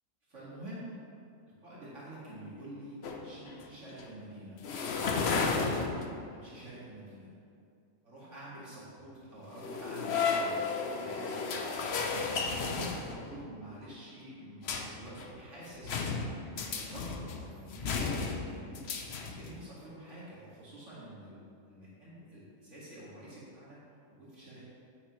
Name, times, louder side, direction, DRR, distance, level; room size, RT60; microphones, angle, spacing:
voice 1, 0.3-0.9 1.6-5.8 6.3-7.3 8.0-10.6 10.9-11.7 12.4-16.0 16.4-18.9 19.2-21.4 21.7-23.8 24.1-24.6, right 1 dB, 60° right, -9 dB, 2.4 m, -47 dB
sound 1, 3.0-3.7 4.0-4.1 4.6-6.4 9.5-13.5 14.6-15.3 15.7-19.6, left 4 dB, 55° left, 0.9 m, -34 dB
9.6 x 9.3 x 3.2 m, 2.4 s
omnidirectional pair, 1.5 m